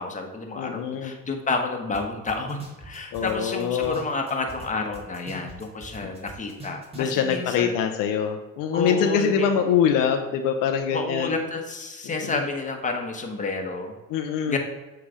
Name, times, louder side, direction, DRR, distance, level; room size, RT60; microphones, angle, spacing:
voice 1, 0.0-7.8 8.7-9.5 10.9-14.0 14.5-14.6, left 3 dB, 25° left, 3 dB, 1.2 m, -30 dB
voice 2, 0.5-1.1 3.1-4.0 7.0-11.3 12.0-12.4 14.1-14.6, left 7 dB, 75° left, 6 dB, 0.7 m, -24 dB
sound 1, 1.9-2.0 2.3-4.7 4.9-7.2, right 1 dB, 20° right, 2.1 m, -42 dB
7.4 x 3.4 x 4.9 m, 1.1 s
supercardioid pair, 90°, 33 cm